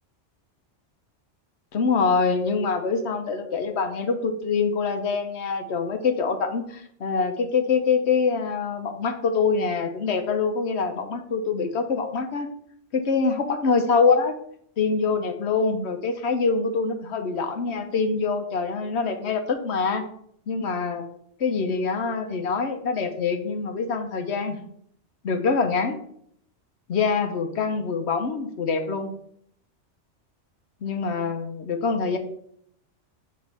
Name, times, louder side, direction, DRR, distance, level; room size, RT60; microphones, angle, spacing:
voice 1, 1.7-12.5 12.9-14.3 14.8-20.0 20.5-21.1 21.4-24.6 25.2-26.0 26.9-29.1 30.8-32.2, left 5 dB, 70° left, 6 dB, 1.1 m, -25 dB
6.2 x 3.7 x 5.6 m, 0.67 s
omnidirectional pair, 1.2 m